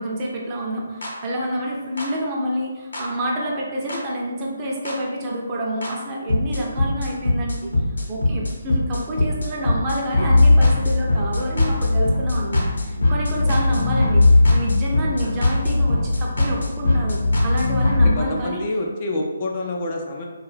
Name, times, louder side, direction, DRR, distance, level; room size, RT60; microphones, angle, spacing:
voice 1, 0.0-7.7 8.1-18.7, equal, 25° right, -2 dB, 0.5 m, -28 dB
sound 1, 1.0-1.1 2.0-2.1 2.9-3.0 3.9-4.0 4.9-5.0 5.8-5.9 6.3-18.1, left 2 dB, 80° left, 0.8 m, -19 dB
voice 2, 18.2-20.3, left 2 dB, 40° left, 0 dB, 0.4 m, -27 dB
2.5 x 2.3 x 3.2 m, 1.3 s
figure-of-eight pair, 145°, 0 cm